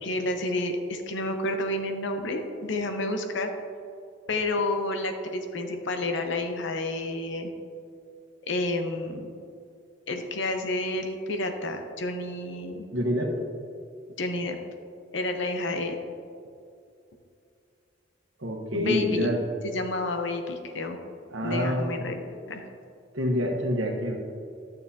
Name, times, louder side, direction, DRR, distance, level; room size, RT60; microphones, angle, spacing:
voice 1, 0.0-3.5 4.3-7.5 8.5-9.3 10.1-12.9 14.2-14.6 15.1-16.0 18.7-19.3 19.6-21.0 21.4-22.2 22.5-22.6, left 2 dB, 70° left, 5 dB, 0.8 m, -30 dB
voice 2, 12.9-13.4 18.4-19.4 21.3-21.9 23.1-24.2, equal, 80° right, 1 dB, 1.2 m, -27 dB
11.5 x 6.6 x 2.8 m, 2.5 s
head